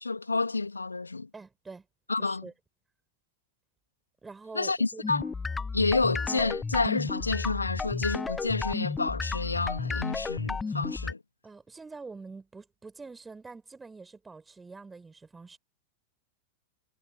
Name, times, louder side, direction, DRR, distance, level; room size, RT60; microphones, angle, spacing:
voice 1, 0.0-1.3 2.1-2.5 4.5-5.3 5.7-11.2, left 3 dB, 80° left, 2.0 m, -29 dB
voice 2, 1.3-1.9 2.2-2.5 4.2-5.0 11.4-15.6, right 4 dB, 10° right, 5.4 m, -45 dB
sound 1, 5.0-11.1, left 4 dB, 15° left, 0.4 m, -33 dB
figure-of-eight pair, 90°, 0 cm